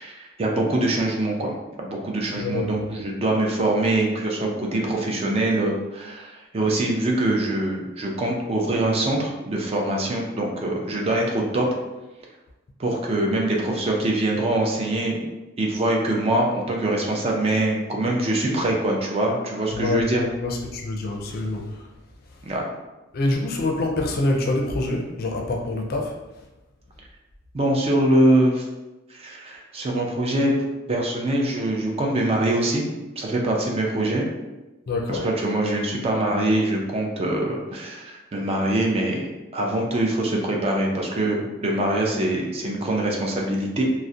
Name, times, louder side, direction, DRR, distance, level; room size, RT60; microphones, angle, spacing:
voice 1, 0.0-1.5 1.8-11.7 12.8-15.3 15.6-20.2 22.4-22.7 27.5-28.7 29.1-30.5 30.9-32.8 33.2-34.3 35.1-43.8, right 1 dB, 30° right, 0 dB, 0.4 m, -23 dB
voice 2, 2.4-2.8 19.7-21.8 23.1-26.2 34.9-35.3, left 2 dB, 50° left, 1 dB, 0.4 m, -26 dB
2.3 x 2.0 x 2.6 m, 1.0 s
head